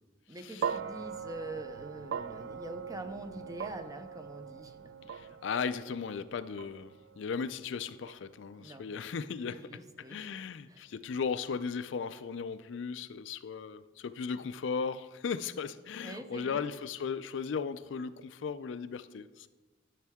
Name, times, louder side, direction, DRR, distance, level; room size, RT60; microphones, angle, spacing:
voice 1, 0.3-4.8 5.0-5.1 8.6-8.9 9.5-10.3 10.7-10.9 16.0-16.6, right 1 dB, 20° right, 0.6 m, -44 dB
sound 1, 0.6-8.9, right 7 dB, 70° right, 0.3 m, -41 dB
voice 2, 5.1-9.7 10.1-19.5, left 6 dB, 70° left, 0.4 m, -36 dB
11.0 x 6.6 x 3.5 m
head